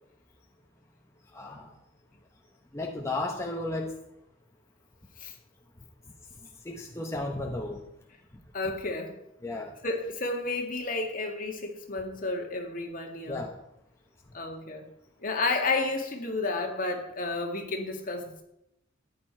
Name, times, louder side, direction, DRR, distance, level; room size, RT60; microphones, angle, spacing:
voice 1, 1.3-1.8 2.7-3.9 6.4-7.8 9.4-9.8 13.3-13.5, left 2 dB, 15° left, 1 dB, 1.0 m, -34 dB
voice 2, 8.5-9.2 9.8-13.4 14.3-14.9 15.2-18.4, left 3 dB, 45° left, 3 dB, 2.0 m, -31 dB
13.5 x 10.0 x 4.5 m, 0.82 s
head